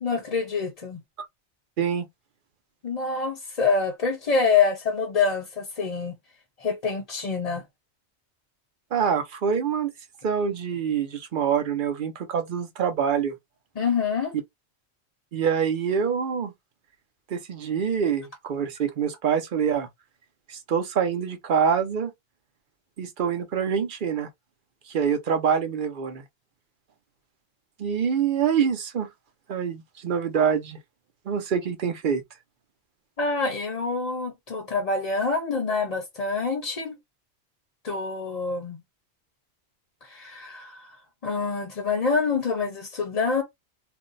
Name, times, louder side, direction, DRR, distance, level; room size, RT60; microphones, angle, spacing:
voice 1, 0.0-1.0 2.8-6.2 6.6-7.6 13.8-14.3 33.2-37.0 37.8-38.8 40.0-41.0 41.2-43.4, left 4 dB, 40° left, 0.7 m, -26 dB
voice 2, 8.9-9.9 10.2-13.3 15.3-16.5 17.3-19.9 20.5-22.1 23.0-24.3 24.9-26.2 27.8-29.1 29.5-30.8 31.3-32.2, right 7 dB, 55° right, 0.8 m, -25 dB
2.6 x 2.1 x 3.8 m
omnidirectional pair, 1.1 m